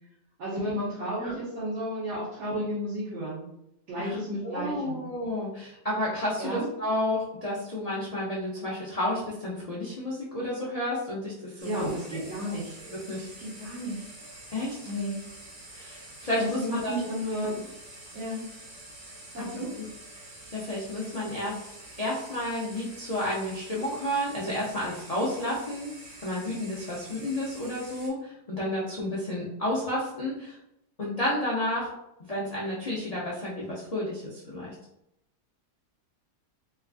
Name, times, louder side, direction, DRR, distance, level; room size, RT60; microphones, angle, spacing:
voice 1, 0.4-3.5 3.9-5.0 6.4-6.7 11.6-12.8 13.2-14.1 14.9-15.2 16.4-17.7 18.1-18.5 19.3-19.7, equal, 75° right, -11 dB, 1.7 m, -32 dB
voice 2, 4.4-12.6 12.8-13.3 14.5-14.8 15.7-17.0 19.4-19.5 19.8-19.9 20.5-21.7 22.0-25.9 26.2-30.6 31.0-31.9 32.3-34.7, left 1 dB, 80° left, -6 dB, 0.3 m, -31 dB
sound 1, 11.6-28.1, right 1 dB, 55° right, 1.4 m, -47 dB
4.2 x 2.4 x 2.4 m, 0.84 s
omnidirectional pair, 1.8 m